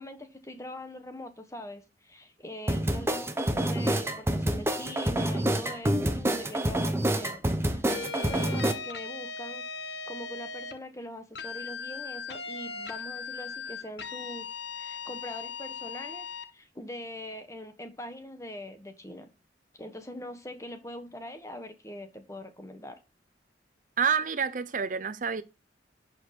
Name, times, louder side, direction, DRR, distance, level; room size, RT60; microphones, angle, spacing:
voice 1, 0.0-16.2 16.5-19.3 19.7-23.0, left 1 dB, 15° left, 1.4 m, -43 dB
sound 1, 2.7-8.7, right 1 dB, 15° right, 1.0 m, -27 dB
sound 2, 7.9-10.8 11.3-16.5, left 5 dB, 70° left, 1.3 m, -38 dB
voice 2, 24.0-25.4, right 6 dB, 45° right, 0.6 m, -28 dB
11.5 x 5.1 x 5.9 m
head